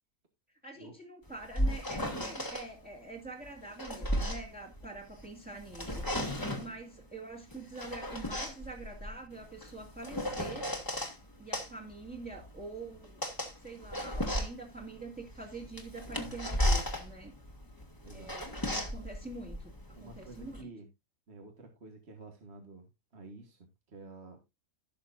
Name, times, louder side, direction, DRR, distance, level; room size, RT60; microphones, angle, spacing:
voice 1, 0.6-6.1 6.6-10.7 11.4-13.2 13.6-17.3 18.1-20.7, right 3 dB, 5° right, 2.1 m, -45 dB
sound 1, 1.3-2.7 3.5-5.3 5.6-6.7 7.5-11.2 11.5-20.6, equal, 15° left, 1.8 m, -35 dB
voice 2, 18.0-18.4 20.0-20.9 21.3-24.4, right 3 dB, 50° right, 1.8 m, -50 dB
16.5 x 6.6 x 2.6 m
omnidirectional pair, 1.5 m